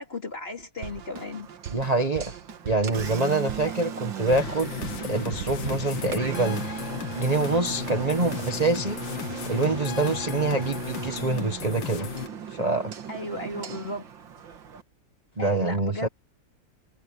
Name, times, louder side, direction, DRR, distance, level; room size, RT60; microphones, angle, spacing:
voice 1, 0.0-1.5 3.6-3.8 13.1-14.0 15.4-16.1, left 2 dB, 30° left, 3.3 m, -35 dB
Drum kit, 0.8-6.2, right 8 dB, 65° right, 1.7 m, -40 dB
Engine, 0.8-14.8, right 7 dB, 85° right, 2.4 m, -37 dB
voice 2, 1.7-2.3 2.6-4.7 5.0-6.9 7.1-9.0 9.4-12.1 12.5-12.9 15.4-16.1, right 3 dB, 20° right, 1.5 m, -25 dB
sound 1, 4.3-12.3, left 10 dB, 85° left, 2.1 m, -36 dB
omnidirectional pair, 2.0 m